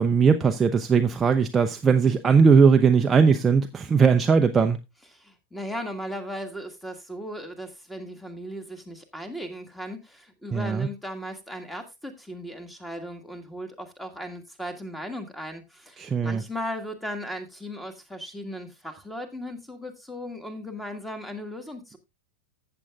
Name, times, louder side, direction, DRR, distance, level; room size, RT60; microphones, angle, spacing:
voice 1, 0.0-4.8 10.5-10.9 16.0-16.4, right 5 dB, 20° right, 0.6 m, -19 dB
voice 2, 5.1-22.0, equal, 5° left, 1.8 m, -37 dB
14.5 x 7.7 x 2.4 m
figure-of-eight pair, 90°, 0 cm